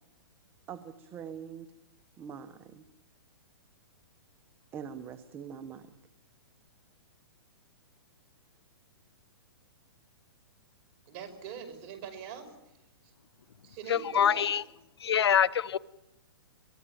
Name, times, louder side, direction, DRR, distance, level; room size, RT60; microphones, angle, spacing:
voice 1, 0.7-1.7 2.2-2.8 4.7-5.9, right 7 dB, 15° right, 9 dB, 1.1 m, -43 dB
voice 2, 11.1-12.5 13.0-13.1 13.6-14.5, right 8 dB, 35° right, 6 dB, 5.5 m, -43 dB
voice 3, 13.9-14.6 15.0-15.8, left 8 dB, 80° left, 20 dB, 0.9 m, -25 dB
24.0 x 22.0 x 8.8 m, 0.86 s
hypercardioid pair, 155°, 13 cm